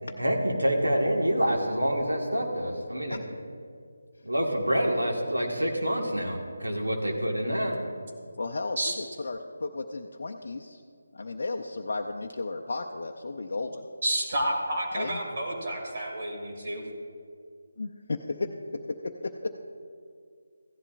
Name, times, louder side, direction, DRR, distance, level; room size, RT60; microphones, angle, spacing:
voice 1, 0.0-3.2 4.2-7.8, equal, 80° right, 0 dB, 1.7 m, -27 dB
voice 2, 8.4-10.8 11.1-13.9 14.9-15.2 17.8-18.5 18.9-19.5, left 3 dB, 50° left, 1 dB, 0.5 m, -34 dB
voice 3, 14.0-16.8, right 1 dB, 45° right, -1 dB, 2.5 m, -30 dB
15.5 x 11.0 x 2.5 m, 2.2 s
figure-of-eight pair, 155°, 0 cm